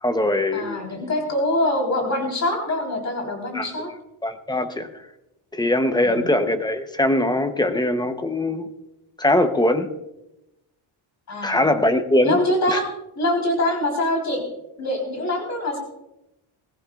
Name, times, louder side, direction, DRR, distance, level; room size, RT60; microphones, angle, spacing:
voice 1, 0.0-0.8 3.5-3.7 4.2-4.9 5.5-8.7 9.2-9.9 11.4-12.4 12.7-12.8, left 1 dB, 10° left, 8 dB, 0.7 m, -21 dB
voice 2, 0.5-3.9 6.0-6.3 11.3-11.6 12.2-12.9 13.2-14.4 14.8-15.8, left 1 dB, 35° left, 1 dB, 3.6 m, -24 dB
20.0 x 15.5 x 2.3 m, 0.91 s
cardioid pair, 165°, 50 cm